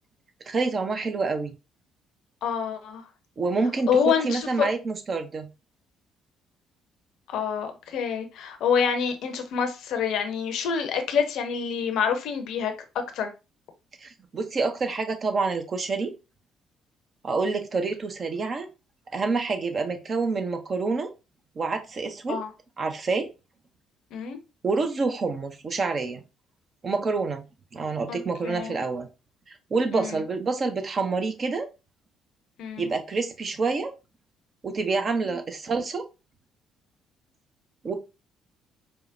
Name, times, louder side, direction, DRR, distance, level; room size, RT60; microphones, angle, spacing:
voice 1, 0.5-1.5 3.4-3.9 4.2-5.5 14.0-16.1 17.2-18.7 19.1-21.1 21.6-22.4 22.8-23.3 24.6-26.2 26.8-27.4 27.7-29.1 29.7-31.7 32.8-33.9 34.6-36.0 37.8-37.9, right 4 dB, 40° right, 0.5 m, -27 dB
voice 2, 2.4-3.0 3.9-4.7 7.3-12.7 13.1-13.3 22.3-22.5 24.1-24.4 28.1-28.8 29.9-30.2 32.6-32.9 35.2-35.4, left 7 dB, 60° left, 0.6 m, -27 dB
4.5 x 2.1 x 2.5 m
figure-of-eight pair, 45°, 0 cm